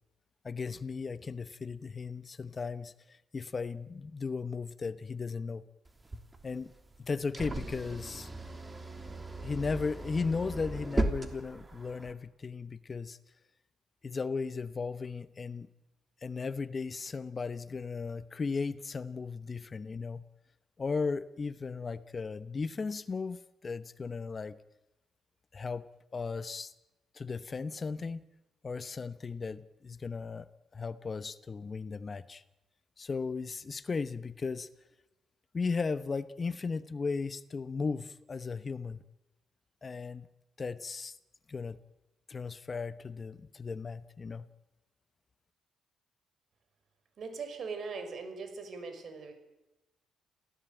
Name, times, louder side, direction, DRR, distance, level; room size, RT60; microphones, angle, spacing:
voice 1, 0.4-5.6 6.4-6.7 7.0-8.3 9.4-13.2 14.0-15.7 16.2-20.2 20.8-24.6 25.5-25.9 26.1-26.7 27.1-28.2 28.6-30.5 30.7-32.4 33.0-34.7 35.5-39.0 39.8-40.3 40.6-41.2 41.5-41.8 42.3-44.5, left 4 dB, 35° left, 14 dB, 0.9 m, -36 dB
sound 1, 5.9-12.1, right 1 dB, 20° right, 3.0 m, -37 dB
voice 2, 7.4-7.7 47.2-49.4, right 4 dB, 55° right, 8 dB, 5.7 m, -41 dB
27.5 x 17.0 x 9.0 m, 0.98 s
cardioid pair, 90°, 0 cm